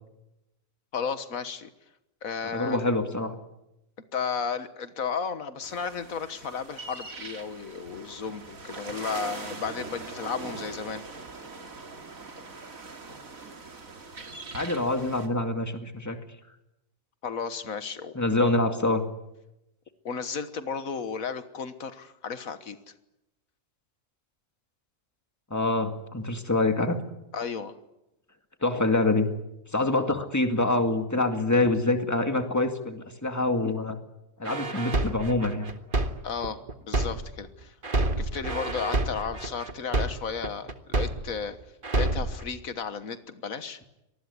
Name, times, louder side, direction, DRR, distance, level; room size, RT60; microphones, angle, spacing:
voice 1, 0.9-1.7 2.2-2.8 4.1-11.0 17.2-18.5 20.1-22.8 27.3-27.8 28.7-28.8 36.2-36.6 36.9-37.8 38.2-41.6 41.9-43.8, left 6 dB, 90° left, 11 dB, 1.8 m, -33 dB
voice 2, 2.5-3.4 14.5-16.2 18.1-19.0 25.5-27.0 28.6-29.3 29.7-34.0 34.4-35.7, left 2 dB, 10° left, 6 dB, 2.2 m, -25 dB
sound 1, 5.6-15.3, right 3 dB, 90° right, 2.8 m, -42 dB
sound 2, 34.4-37.5 37.8-41.5 41.8-42.4, right 2 dB, 40° right, 1.8 m, -28 dB
25.5 x 19.5 x 9.7 m, 0.92 s
omnidirectional pair, 1.4 m